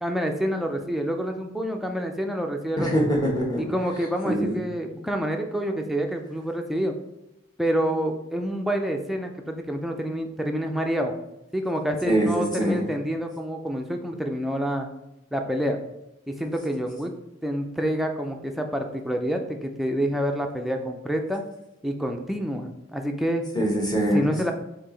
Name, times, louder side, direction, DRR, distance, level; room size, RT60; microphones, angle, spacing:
voice 1, 0.0-2.9 3.6-7.0 7.6-11.1 11.5-14.9 15.3-15.8 16.3-17.1 17.4-21.4 21.8-23.5 24.1-24.5, equal, ahead, 3 dB, 0.4 m, -27 dB
voice 2, 2.8-3.6 4.2-4.6 12.0-12.8 23.5-24.2, right 1 dB, 20° left, -3 dB, 1.1 m, -23 dB
4.7 x 2.8 x 3.8 m, 0.89 s
head